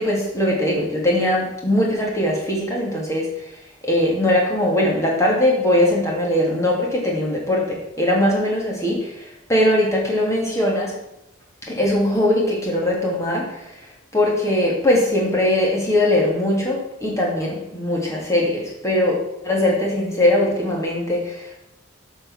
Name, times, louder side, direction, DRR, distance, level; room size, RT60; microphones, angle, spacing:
voice 1, 0.0-3.3 3.8-10.9 11.6-13.7 14.1-21.6, left 1 dB, 15° left, -2 dB, 2.9 m, -20 dB
11.5 x 5.6 x 7.3 m, 0.89 s
head